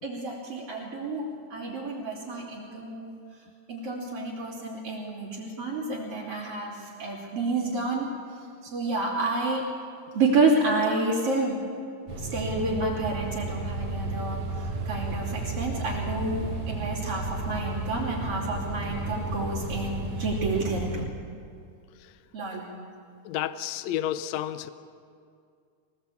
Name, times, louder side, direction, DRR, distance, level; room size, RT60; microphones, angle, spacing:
voice 1, 0.0-3.1 3.7-8.1 8.6-9.7 10.1-11.6 12.2-21.1 22.3-22.7, right 3 dB, 45° right, -7 dB, 4.1 m, -29 dB
sound 1, 12.1-21.1, right 2 dB, 90° right, 3.7 m, -33 dB
voice 2, 23.3-24.7, left 12 dB, 70° left, 12 dB, 1.9 m, -31 dB
25.5 x 18.0 x 8.7 m, 2.3 s
omnidirectional pair, 3.6 m